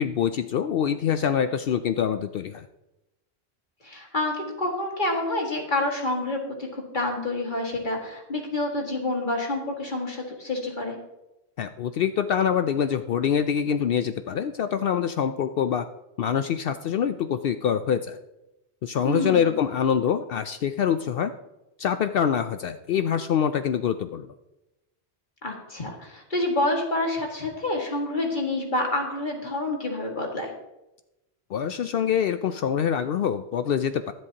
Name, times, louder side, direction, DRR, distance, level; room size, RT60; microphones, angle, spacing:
voice 1, 0.0-2.7 11.6-15.8 16.2-18.2 18.8-21.3 21.8-24.3 31.5-34.1, left 8 dB, 65° left, 10 dB, 0.7 m, -25 dB
voice 2, 3.8-11.0 19.0-19.6 25.4-30.5, left 2 dB, 50° left, 0 dB, 2.1 m, -28 dB
22.5 x 7.8 x 2.9 m, 0.95 s
omnidirectional pair, 1.1 m